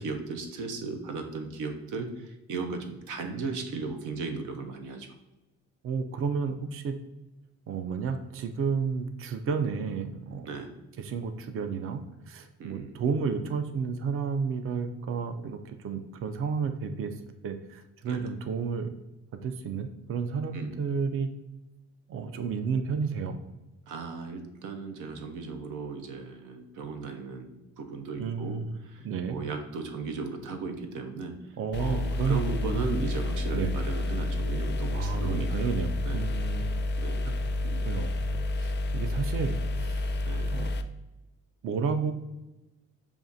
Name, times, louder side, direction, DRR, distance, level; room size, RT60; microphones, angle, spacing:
voice 1, 0.0-5.1 10.5-10.7 12.6-13.0 18.0-18.3 20.5-20.8 23.9-29.0 29.3-31.4 31.8-35.7 36.1-36.2 37.0-37.9 40.3-40.5, right 4 dB, 90° right, 5 dB, 0.7 m, -36 dB
voice 2, 5.8-6.9 7.7-10.5 11.0-17.1 17.4-18.9 19.3-21.3 22.1-23.4 28.2-28.7 29.0-29.4 31.6-32.8 33.5-33.7 34.9-35.9 36.1-36.7 37.2-37.4 37.9-38.1 38.6-40.2 40.5-40.7 41.6-42.1, right 5 dB, 45° right, 8 dB, 0.4 m, -31 dB
sound 1, 31.7-40.8, left 1 dB, 35° left, 0.4 m, -30 dB
6.8 x 2.4 x 2.5 m, 1.0 s
cardioid pair, 90°, 30 cm